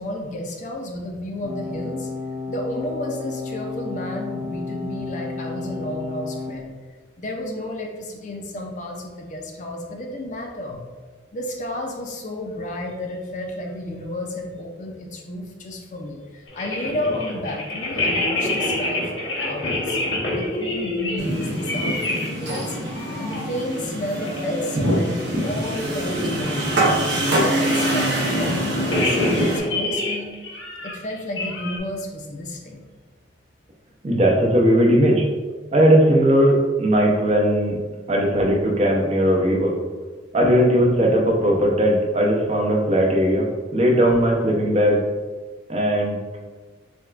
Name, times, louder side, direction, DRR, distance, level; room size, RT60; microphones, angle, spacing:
voice 1, 0.0-2.1 2.5-6.7 7.2-10.8 11.3-20.0 20.3-22.8 23.2-27.0 27.3-30.3 30.8-32.8, left 1 dB, 40° left, 1 dB, 0.5 m, -32 dB
sound 1, 1.4-6.5, left 4 dB, 80° right, 1.4 m, -32 dB
sound 2, 16.5-22.3 22.5-23.4 23.7-23.8 24.2-24.6 24.9-25.1 25.5-26.8 28.7-31.8, left 2 dB, 70° left, 1.1 m, -27 dB
sound 3, 21.2-29.6, right 1 dB, 65° right, 0.8 m, -24 dB
voice 2, 34.0-35.2 35.7-37.8 38.1-39.7 40.3-43.5 43.7-45.0 45.7-46.2, equal, 35° right, 0 dB, 0.5 m, -18 dB
6.0 x 2.3 x 2.4 m, 1.4 s
head